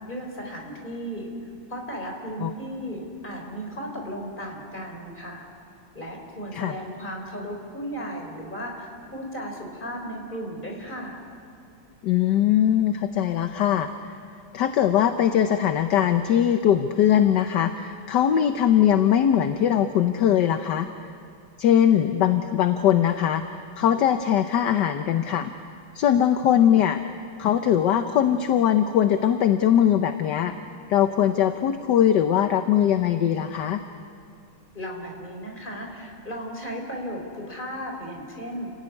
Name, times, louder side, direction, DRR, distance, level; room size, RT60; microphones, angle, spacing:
voice 1, 0.1-1.3 1.7-5.4 5.9-11.2 34.7-38.7, equal, 20° left, 1 dB, 4.5 m, -35 dB
voice 2, 12.0-13.9 14.5-20.9 21.6-25.5 25.9-27.0 27.4-30.5 30.9-33.8, left 10 dB, 60° left, 8 dB, 1.3 m, -21 dB
29.5 x 17.0 x 9.8 m, 2.6 s
omnidirectional pair, 2.4 m